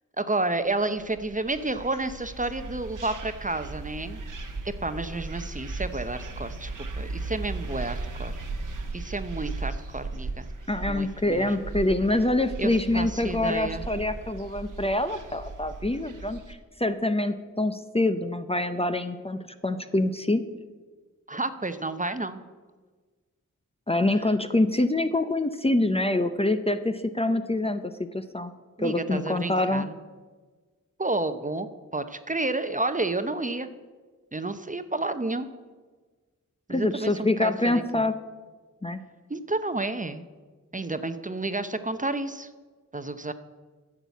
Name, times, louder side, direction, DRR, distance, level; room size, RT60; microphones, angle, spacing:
voice 1, 0.2-4.2 4.6-8.3 8.9-10.5 10.8-11.5 12.6-13.8 21.3-22.4 28.8-29.9 31.0-31.7 31.9-33.7 34.3-35.5 36.7-38.0 39.3-40.2 40.7-42.5 42.9-43.3, right 2 dB, 25° right, 10 dB, 0.8 m, -30 dB
sound 1, 0.8-16.5, right 3 dB, 80° right, 1.2 m, -37 dB
voice 2, 10.7-20.4 23.9-28.5 28.8-29.9 36.7-38.1 38.8-39.0, left 2 dB, 20° left, 9 dB, 0.6 m, -25 dB
10.5 x 7.5 x 8.3 m, 1.4 s
wide cardioid pair, 65°, 31 cm